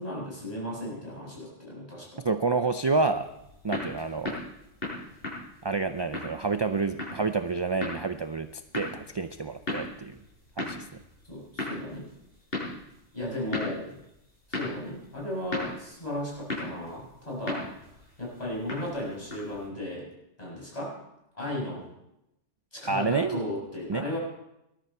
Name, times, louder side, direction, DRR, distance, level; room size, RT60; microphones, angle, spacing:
voice 1, 0.0-2.2 11.3-12.1 13.1-13.9 14.5-17.6 18.2-20.1 20.4-20.9 21.3-21.8 22.7-24.2, left 1 dB, 35° left, -4 dB, 7.2 m, -35 dB
voice 2, 2.2-3.3 3.6-4.4 5.6-10.2 10.6-10.9 22.9-23.4 23.9-24.1, right 4 dB, 35° right, 9 dB, 0.4 m, -28 dB
sound 1, 3.2-19.7, left 2 dB, 55° left, 7.2 m, -38 dB
19.5 x 13.0 x 4.4 m, 0.86 s
omnidirectional pair, 1.2 m